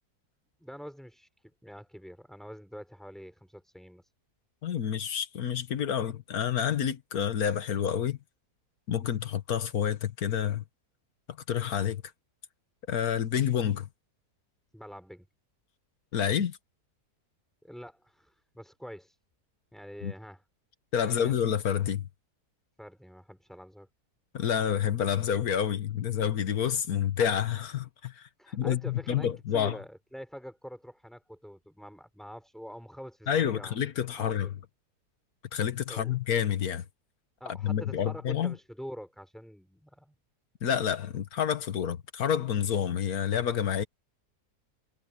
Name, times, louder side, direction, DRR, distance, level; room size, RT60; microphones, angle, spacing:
voice 1, 0.6-4.1 14.7-15.3 17.6-19.2 19.7-20.4 21.0-21.3 22.8-23.9 28.4-33.8 34.1-34.5 35.9-36.2 37.4-40.1, equal, ahead, 4.5 m, -45 dB
voice 2, 4.6-8.2 8.9-10.6 11.5-12.0 12.9-13.9 16.1-16.6 20.0-20.1 20.9-22.1 24.3-29.8 33.3-34.5 35.5-36.8 37.6-38.5 40.6-43.8, left 9 dB, 70° left, 1.7 m, -28 dB
omnidirectional pair, 1.7 m